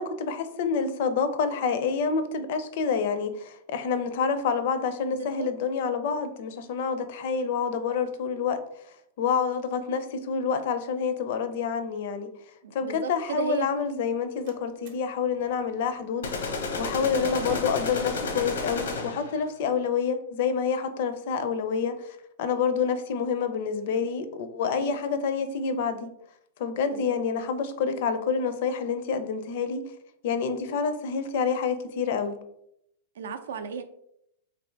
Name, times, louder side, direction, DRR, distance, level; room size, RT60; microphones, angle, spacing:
voice 1, 0.0-8.6 9.2-12.3 12.7-16.3 16.8-26.1 26.6-29.8 30.2-32.4, left 6 dB, 45° left, 10 dB, 0.4 m, -28 dB
voice 2, 5.1-5.5 12.6-13.7 17.0-17.2 24.8-24.9 26.9-27.0 33.2-33.8, right 7 dB, 80° right, 7 dB, 0.4 m, -35 dB
Slam, 13.9-19.9, right 4 dB, 40° right, 0.6 m, -48 dB
sound 1, 16.2-19.4, left 3 dB, 90° left, 0.8 m, -31 dB
3.3 x 2.5 x 4.4 m, 0.76 s
supercardioid pair, 175°, 0 cm